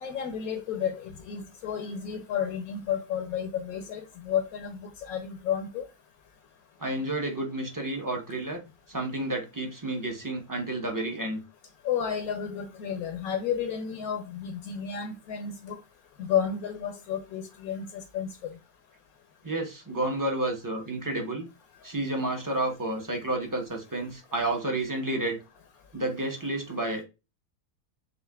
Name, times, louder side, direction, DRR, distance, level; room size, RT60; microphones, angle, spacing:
voice 1, 0.0-5.8 11.8-15.8 16.2-18.3, left 8 dB, 70° left, 1.1 m, -32 dB
voice 2, 6.8-8.6 8.9-11.4 19.4-21.5 21.8-25.4 25.9-27.0, right 1 dB, 20° right, 0.6 m, -30 dB
6.4 x 2.5 x 2.3 m
omnidirectional pair, 1.6 m